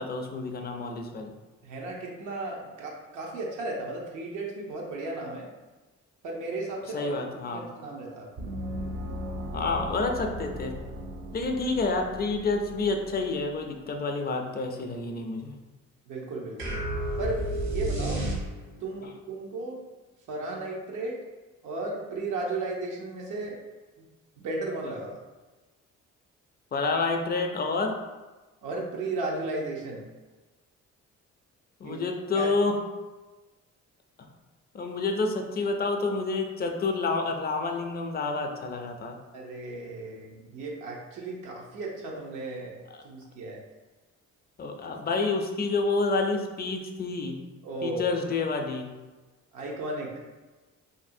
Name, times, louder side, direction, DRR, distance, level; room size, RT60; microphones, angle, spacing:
voice 1, 0.0-1.3 6.9-7.6 9.5-10.7 11.3-15.5 26.7-27.9 31.8-32.8 34.7-39.2 42.9-43.0 44.6-47.4 47.8-48.9, left 3 dB, 35° left, 3 dB, 0.4 m, -29 dB
voice 2, 1.6-5.5 6.2-7.3 7.5-8.3 16.1-16.8 17.2-18.3 18.8-19.8 20.3-21.2 21.6-23.6 24.0-24.1 24.4-25.2 28.6-30.1 31.8-32.0 32.3-32.5 39.3-42.8 43.0-43.6 47.6-48.1 49.5-50.1, right 2 dB, 85° right, -2 dB, 0.7 m, -35 dB
Gong, 8.4-13.6, equal, 50° right, 0.5 m, -38 dB
sound 1, 16.6-18.9, right 1 dB, 65° right, 1.1 m, -30 dB
2.8 x 2.6 x 2.6 m, 1.2 s
cardioid pair, 90°, 30 cm